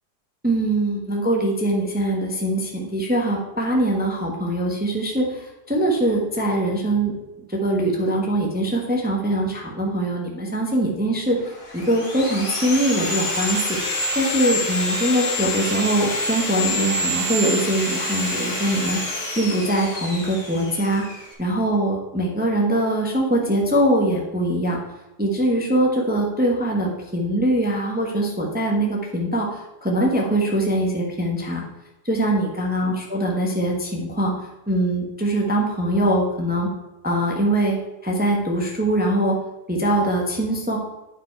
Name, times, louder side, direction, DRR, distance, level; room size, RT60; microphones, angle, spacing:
voice 1, 0.4-7.1 7.5-11.4 11.7-13.8 14.1-19.0 19.3-21.0 21.4-24.8 25.2-31.6 32.0-34.3 34.7-36.7 37.0-37.8 38.0-39.3 39.7-40.8, right 1 dB, 5° right, -1 dB, 0.9 m, -22 dB
Sawing, 11.5-21.3, left 1 dB, 35° left, 1.8 m, -27 dB
9.6 x 4.6 x 4.5 m, 1.0 s
omnidirectional pair, 1.7 m